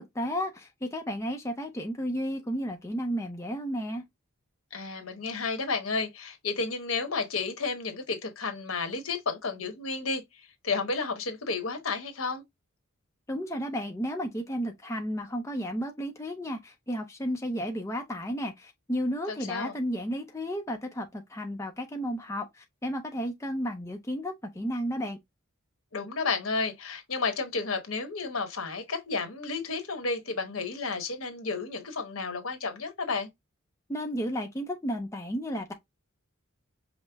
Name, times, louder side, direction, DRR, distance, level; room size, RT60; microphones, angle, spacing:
voice 1, 0.0-4.0 13.3-25.2 33.9-35.7, equal, 15° left, 0.6 m, -33 dB
voice 2, 4.7-10.2 10.6-12.4 19.3-19.7 25.9-33.3, left 4 dB, 70° left, 1.1 m, -32 dB
5.3 x 2.1 x 3.4 m
head